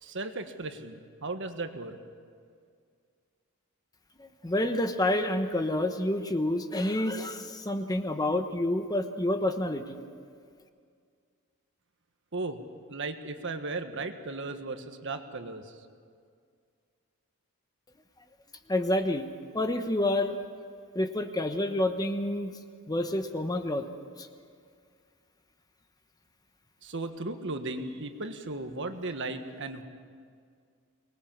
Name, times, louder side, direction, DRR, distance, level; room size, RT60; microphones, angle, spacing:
voice 1, 0.0-2.0 12.3-12.6 12.9-15.7 26.8-29.8, right 2 dB, 60° right, 7 dB, 1.5 m, -36 dB
voice 2, 4.2-10.0 18.7-19.3 19.5-20.4 20.9-22.6 22.9-23.9 24.2-24.3, left 1 dB, 15° left, 7 dB, 1.0 m, -28 dB
24.0 x 20.0 x 7.3 m, 2.2 s
head